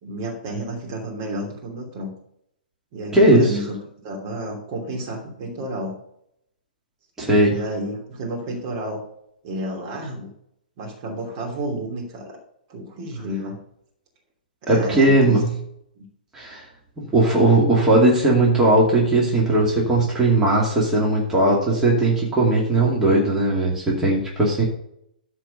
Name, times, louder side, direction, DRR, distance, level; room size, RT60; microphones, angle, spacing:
voice 1, 0.0-2.1 2.9-5.9 7.4-9.0 9.4-10.3 10.8-12.4 12.7-13.6 14.6-15.4 16.0-16.1, right 1 dB, 40° right, -1 dB, 2.9 m, -31 dB
voice 2, 3.1-3.6 7.2-7.5 14.7-15.4 16.3-16.6 17.0-24.6, right 2 dB, 10° right, -4 dB, 2.4 m, -18 dB
13.5 x 4.7 x 5.5 m, 0.72 s
figure-of-eight pair, 120°, 5 cm